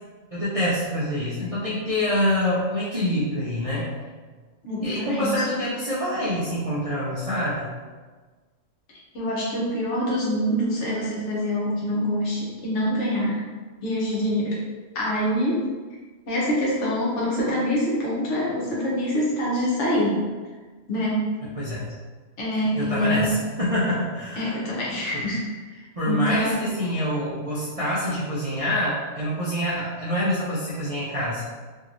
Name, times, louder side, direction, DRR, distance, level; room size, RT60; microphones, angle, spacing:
voice 1, 0.3-3.9 4.8-7.7 21.5-21.9 22.7-24.6 25.1-25.2 26.0-31.6, left 1 dB, 45° right, -9 dB, 0.4 m, -26 dB
voice 2, 4.6-5.5 9.1-13.4 13.8-14.6 14.9-15.6 16.3-20.2 20.9-21.3 22.4-23.3 24.4-26.6, equal, 70° left, -5 dB, 1.1 m, -25 dB
2.9 x 2.6 x 2.5 m, 1.4 s
omnidirectional pair, 1.3 m